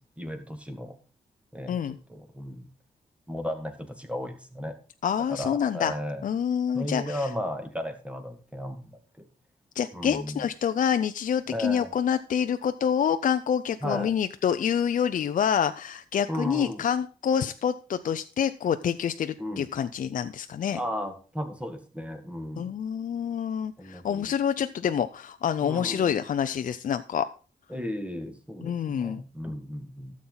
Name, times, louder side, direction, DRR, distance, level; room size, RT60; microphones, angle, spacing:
voice 1, 0.2-1.0 1.5-2.7 3.3-4.7 5.3-6.2 6.7-9.0 9.9-10.4 11.5-11.9 13.8-14.1 16.3-16.8 19.4-19.6 20.7-22.7 23.8-24.2 25.6-26.2 27.7-30.1, equal, 10° right, 6 dB, 1.8 m, -35 dB
voice 2, 5.0-5.9 6.2-7.3 9.8-20.8 22.6-27.3 28.6-29.2, left 8 dB, 60° left, 10 dB, 0.5 m, -27 dB
12.5 x 7.4 x 3.9 m, 0.36 s
cardioid pair, 90°, 15 cm